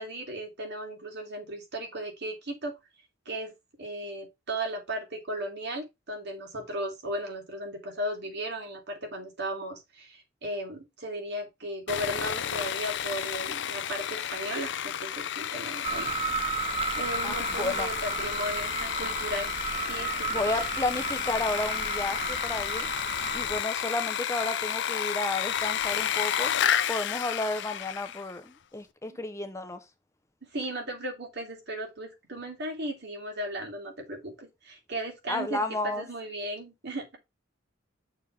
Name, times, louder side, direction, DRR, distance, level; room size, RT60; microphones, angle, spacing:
voice 1, 0.0-2.7 3.3-16.1 16.9-19.5 19.9-20.6 29.1-29.2 30.5-37.2, right 1 dB, 60° right, 2.7 m, -36 dB
Sawing, 11.9-28.3, left 9 dB, 65° left, 0.6 m, -31 dB
sound 1, 15.8-23.6, right 5 dB, 30° right, 0.4 m, -34 dB
voice 2, 17.2-17.9 20.3-22.9 23.3-26.5 26.9-29.8 35.3-36.0, left 2 dB, 15° left, 0.6 m, -32 dB
6.6 x 3.5 x 5.7 m
head